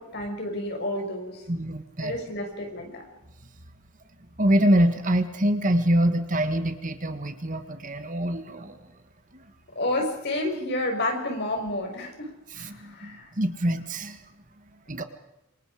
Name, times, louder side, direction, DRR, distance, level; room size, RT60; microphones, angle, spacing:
voice 1, 0.0-1.4 2.0-3.0 9.8-13.3, left 1 dB, 50° left, 3 dB, 5.9 m, -30 dB
voice 2, 1.5-2.1 4.4-8.9 9.3-9.4 12.5-14.2 14.9-15.0, right 1 dB, 35° right, 8 dB, 1.6 m, -25 dB
27.0 x 24.5 x 5.0 m, 0.89 s
head